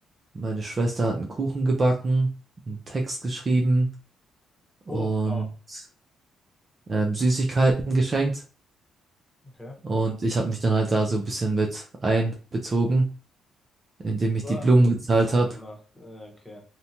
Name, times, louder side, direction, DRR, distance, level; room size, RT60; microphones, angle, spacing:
voice 1, 0.3-2.3 2.7-3.9 4.9-5.4 6.9-8.4 9.8-13.1 14.0-15.6, right 2 dB, 35° right, 1 dB, 0.4 m, -23 dB
voice 2, 4.9-5.4 9.5-9.8 14.4-14.7 15.1-15.2 15.4-16.6, left 2 dB, 5° left, -1 dB, 1.0 m, -39 dB
2.7 x 2.1 x 2.7 m, 0.36 s
cardioid pair, 90°, 0 cm